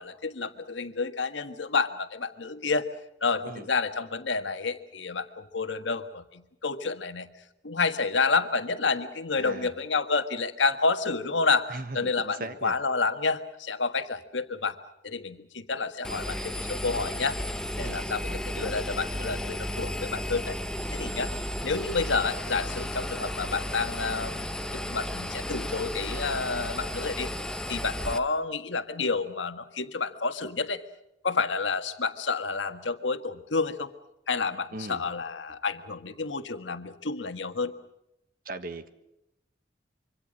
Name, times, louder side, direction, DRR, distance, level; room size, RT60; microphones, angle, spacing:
voice 1, 0.0-2.9 3.2-7.3 7.6-14.8 15.0-17.4 17.8-20.6 20.9-21.3 21.6-24.5 24.7-27.3 27.7-30.8 31.2-33.9 34.3-37.7, left 4 dB, 85° left, 9 dB, 1.6 m, -29 dB
voice 2, 9.3-9.7 11.7-12.7 17.8-18.0 34.7-35.0 38.4-38.9, right 2 dB, 50° right, 10 dB, 1.5 m, -38 dB
Engine, 16.0-28.2, left 1 dB, 5° left, 1.0 m, -34 dB
25.5 x 24.5 x 6.5 m, 0.85 s
head